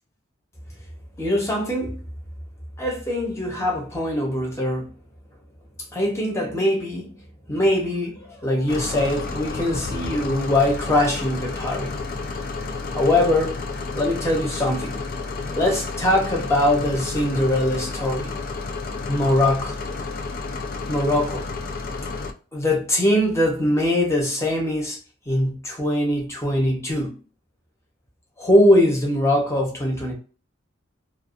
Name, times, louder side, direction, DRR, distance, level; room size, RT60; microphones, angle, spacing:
voice 1, 1.2-1.9 2.8-4.9 5.9-7.2 7.5-12.0 12.9-13.6 13.9-15.0 15.5-18.3 19.1-19.7 20.9-21.5 22.5-25.0 25.3-27.1 28.4-30.1, left 1 dB, 15° left, 0.8 m, -22 dB
sound 1, 8.7-22.3, left 3 dB, 45° left, 0.4 m, -31 dB
2.4 x 2.3 x 2.4 m
head